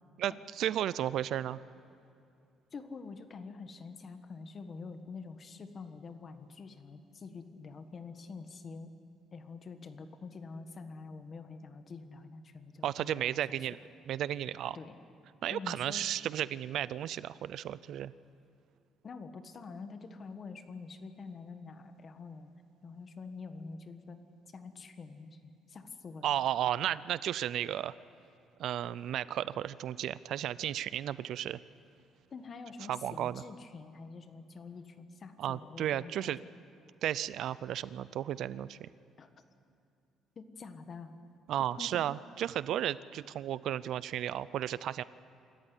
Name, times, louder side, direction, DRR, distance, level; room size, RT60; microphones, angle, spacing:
voice 1, 0.2-1.6 12.8-13.8 14.1-14.8 15.4-18.1 26.2-27.9 28.6-31.6 32.9-33.4 35.4-36.4 37.0-38.9 41.5-45.0, right 11 dB, 60° right, 18 dB, 0.5 m, -34 dB
voice 2, 2.7-8.9 9.3-13.7 14.7-15.0 15.5-16.1 19.0-22.5 22.8-24.2 24.4-25.4 25.7-26.3 32.3-36.3 39.2-39.3 40.3-41.1 41.8-42.0, left 4 dB, 35° left, 9 dB, 1.4 m, -46 dB
26.5 x 14.0 x 9.9 m, 2.5 s
cardioid pair, 145°, 0 cm